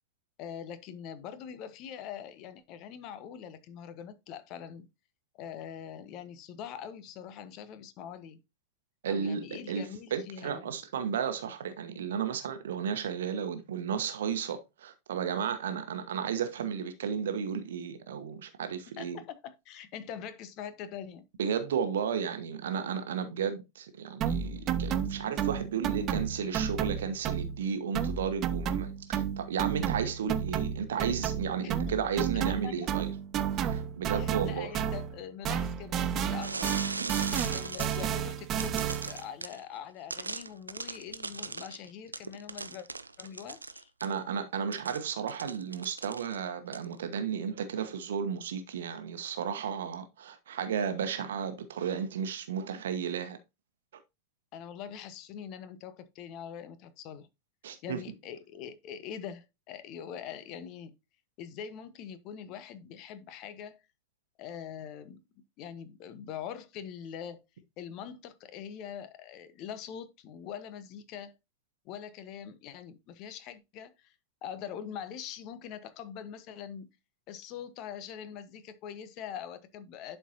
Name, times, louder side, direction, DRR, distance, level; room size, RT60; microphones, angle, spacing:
voice 1, 0.4-4.9 5.3-8.4 9.1-10.8 19.0-21.2 31.6-32.0 32.3-32.7 34.1-36.7 37.5-42.9 43.2-43.9 54.5-57.3 57.8-60.9 61.4-63.8 64.4-67.4 67.8-71.3 71.8-74.1 74.4-76.9 77.3-80.2, left 8 dB, 40° left, 0.9 m, -43 dB
voice 2, 9.0-19.2 21.4-33.1 33.5-34.7 37.0-37.2 44.0-53.4 57.6-58.0, right 7 dB, 60° right, 1.1 m, -33 dB
sound 1, 24.2-27.7 27.9-35.2 35.4-39.2, right 8 dB, 30° right, 0.6 m, -32 dB
sound 2, 36.4-38.1 38.6-39.6 40.1-44.2 44.7-46.4 46.7-47.0, right 3 dB, 80° right, 0.5 m, -39 dB
11.0 x 4.5 x 2.8 m
figure-of-eight pair, 90°, 0 cm